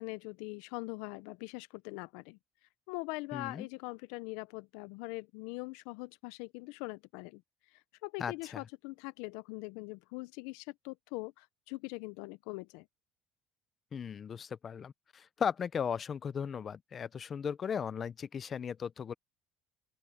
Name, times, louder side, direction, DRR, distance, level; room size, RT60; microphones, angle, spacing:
voice 1, 0.0-2.4 2.9-7.4 7.7-12.9, left 24 dB, 80° left, 0.4 m, -42 dB
voice 2, 3.3-3.7 8.2-8.6 13.9-19.1, left 7 dB, 25° left, 0.5 m, -37 dB
open air
cardioid pair, 165°, 0 cm